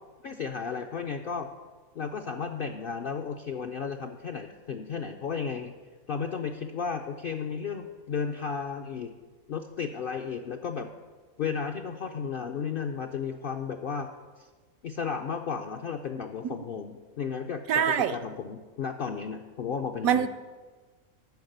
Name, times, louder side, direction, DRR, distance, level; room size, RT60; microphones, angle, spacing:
voice 1, 0.2-1.5 2.0-5.7 6.1-9.1 9.5-10.9 11.4-14.1 14.4-14.5 14.8-20.3, left 6 dB, 65° left, 0.5 m, -34 dB
voice 2, 17.7-18.2 20.0-20.3, right 8 dB, 75° right, 1.0 m, -24 dB
10.5 x 5.9 x 7.9 m
omnidirectional pair, 1.5 m